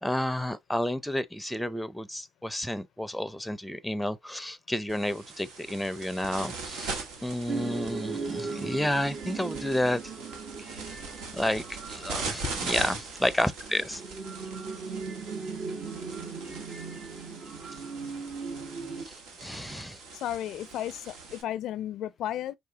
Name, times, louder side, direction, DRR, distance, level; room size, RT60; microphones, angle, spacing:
voice 1, 0.0-10.0 11.3-14.0 19.4-20.0, left 1 dB, 5° left, 0.6 m, -31 dB
sound 1, 4.9-21.4, right 4 dB, 85° right, 1.8 m, -41 dB
sound 2, 7.5-19.0, right 4 dB, 60° right, 2.1 m, -38 dB
voice 2, 20.1-22.6, left 12 dB, 70° left, 0.4 m, -34 dB
4.8 x 3.8 x 2.8 m
cardioid pair, 90°, 0 cm